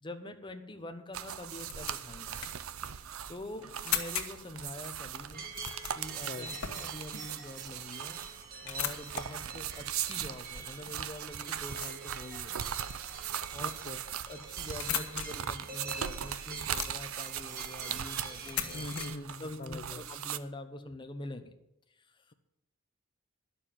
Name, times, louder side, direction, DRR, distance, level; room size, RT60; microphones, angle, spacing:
voice 1, 0.0-2.6 3.3-5.5 5.9-8.2 8.6-12.6 13.5-13.7 14.3-18.8 19.4-21.5 21.9-22.3, left 1 dB, 20° left, 6 dB, 1.0 m, -45 dB
sound 1, 1.1-20.4, right 9 dB, 75° right, 0.6 m, -39 dB
sound 2, 1.3-19.1, left 9 dB, 90° left, 1.5 m, -42 dB
sound 3, 5.3-19.1, right 4 dB, 40° right, 1.7 m, -47 dB
voice 2, 13.6-14.0 18.7-20.0, left 2 dB, 40° left, 6 dB, 0.6 m, -42 dB
11.0 x 7.1 x 8.8 m, 0.85 s
head